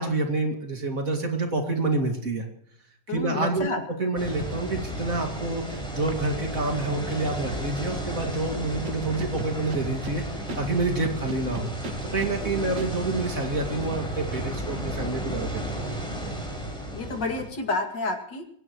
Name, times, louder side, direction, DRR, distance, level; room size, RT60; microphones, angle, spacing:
voice 1, 0.0-2.5 3.1-3.7 4.0-10.2 10.5-11.7 12.1-15.8, right 2 dB, 50° right, 3 dB, 2.7 m, -28 dB
voice 2, 3.1-3.8 11.2-11.3 12.4-12.7 16.9-18.5, left 3 dB, 75° left, 4 dB, 2.9 m, -30 dB
sound 1, 4.2-17.5, right 1 dB, ahead, 5.7 m, -33 dB
Scratching (performance technique), 8.8-10.1 10.5-10.6 11.0-12.3 12.8-12.9, right 3 dB, 80° right, 2.5 m, -36 dB
22.5 x 17.5 x 3.1 m, 0.69 s
omnidirectional pair, 1.9 m